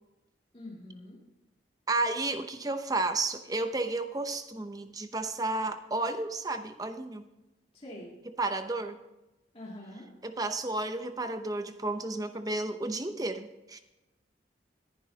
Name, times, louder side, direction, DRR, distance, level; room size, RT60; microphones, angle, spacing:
voice 1, 0.5-1.2 7.7-8.2 9.5-10.1, left 1 dB, 30° left, -5 dB, 2.4 m, -44 dB
voice 2, 1.9-7.3 8.4-9.0 10.2-13.8, right 2 dB, 20° right, 9 dB, 0.7 m, -32 dB
20.0 x 10.5 x 2.8 m, 1.0 s
head